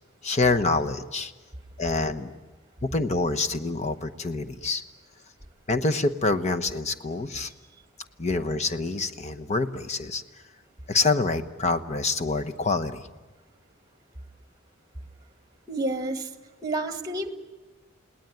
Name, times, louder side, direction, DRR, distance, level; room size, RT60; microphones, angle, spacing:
voice 1, 0.2-1.3 1.8-2.3 2.8-4.8 5.7-7.5 8.2-10.2 10.9-13.0, left 3 dB, 35° left, 7 dB, 1.0 m, -26 dB
voice 2, 15.7-16.3 16.6-17.3, right 2 dB, 20° right, 9 dB, 1.5 m, -29 dB
29.5 x 18.5 x 9.2 m, 1.3 s
head